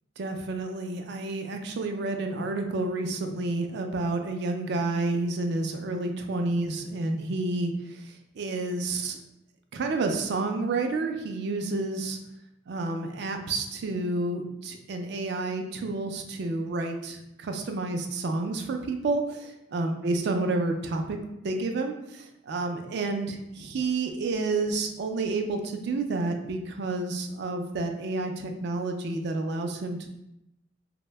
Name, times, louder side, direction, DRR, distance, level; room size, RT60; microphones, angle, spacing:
voice 1, 0.2-9.2 9.7-12.2 12.7-21.2 21.4-30.1, right 2 dB, 60° right, 5 dB, 0.3 m, -30 dB
2.6 x 2.1 x 3.2 m, 0.88 s
head